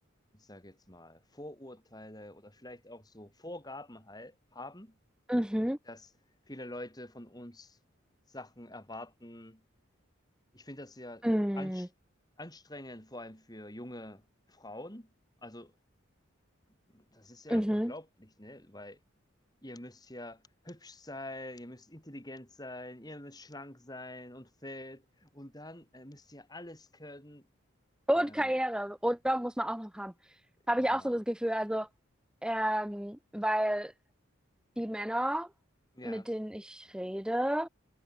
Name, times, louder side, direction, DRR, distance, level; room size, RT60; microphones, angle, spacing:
voice 1, 0.3-5.0 5.9-6.1 6.5-7.8 8.3-9.6 10.5-11.3 11.5-11.9 12.4-15.1 15.4-15.7 16.9-19.0 19.6-27.5 28.1-28.5 30.8-31.2 35.9-36.3, left 1 dB, 20° left, 5.5 m, -46 dB
voice 2, 5.3-5.8 11.2-11.9 17.5-17.9 28.1-30.4 30.7-31.9 32.4-33.9 34.8-35.5 36.0-37.7, equal, 5° right, 1.0 m, -30 dB
head